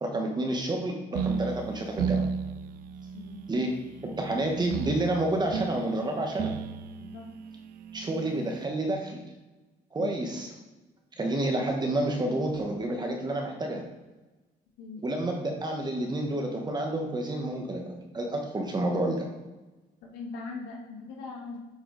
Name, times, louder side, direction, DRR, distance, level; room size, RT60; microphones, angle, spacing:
voice 1, 0.0-2.2 3.5-3.7 4.0-6.5 7.9-9.2 9.9-10.5 11.2-13.8 15.0-19.3, right 1 dB, 25° right, 2 dB, 1.2 m, -29 dB
sound 1, 1.1-8.6, right 6 dB, 60° right, 0.5 m, -35 dB
voice 2, 3.1-3.7 7.0-7.2 10.0-10.2 14.8-15.0 20.0-21.6, left 4 dB, 85° left, -2 dB, 1.6 m, -41 dB
8.0 x 4.7 x 3.9 m, 1.1 s
cardioid pair, 110°, 17 cm